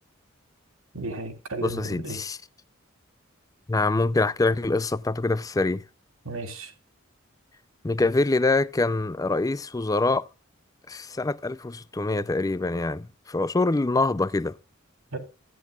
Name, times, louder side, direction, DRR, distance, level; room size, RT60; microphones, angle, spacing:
voice 1, 0.9-2.2 6.2-6.7 15.1-15.2, right 2 dB, 90° right, 3.2 m, -34 dB
voice 2, 1.6-2.4 3.7-5.8 7.8-10.3 10.9-14.5, left 3 dB, 15° left, 0.4 m, -25 dB
16.0 x 10.5 x 2.3 m
head